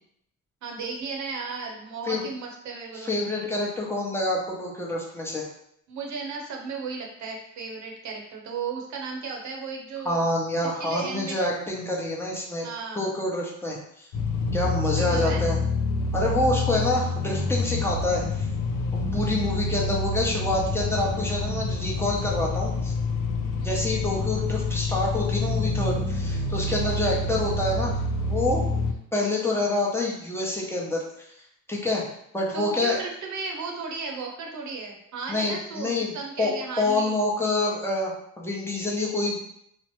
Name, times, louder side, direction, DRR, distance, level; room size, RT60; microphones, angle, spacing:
voice 1, 0.6-3.2 5.9-10.2 10.6-11.4 12.6-13.1 15.0-15.4 19.1-19.3 23.6-23.8 26.7-26.8 32.5-37.2, right 4 dB, 70° right, 0 dB, 0.7 m, -35 dB
voice 2, 2.9-5.4 10.0-12.7 12.9-14.1 14.5-15.6 16.1-18.5 18.9-22.9 23.6-28.6 29.1-31.0 31.7-32.0 32.3-33.0 35.3-36.5 36.8-39.4, left 2 dB, 10° left, -3 dB, 0.7 m, -27 dB
sound 1, 14.1-28.9, left 2 dB, 85° left, 0.5 m, -27 dB
3.1 x 2.0 x 3.0 m, 0.72 s
cardioid pair, 90°, 30 cm